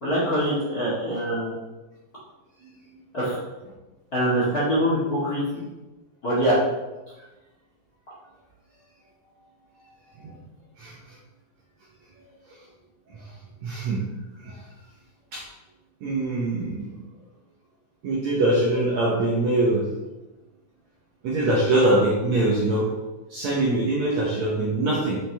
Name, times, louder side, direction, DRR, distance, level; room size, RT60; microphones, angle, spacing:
voice 1, 0.0-1.5 3.1-3.3 4.1-5.6 6.2-6.6, equal, 35° left, -8 dB, 1.6 m, -24 dB
voice 2, 13.6-14.0 14.4-14.6 15.3-15.5 16.0-16.9 18.0-19.9 21.2-22.9 23.3-25.2, right 2 dB, 65° right, -5 dB, 1.9 m, -23 dB
7.2 x 6.1 x 3.5 m, 1.1 s
omnidirectional pair, 4.4 m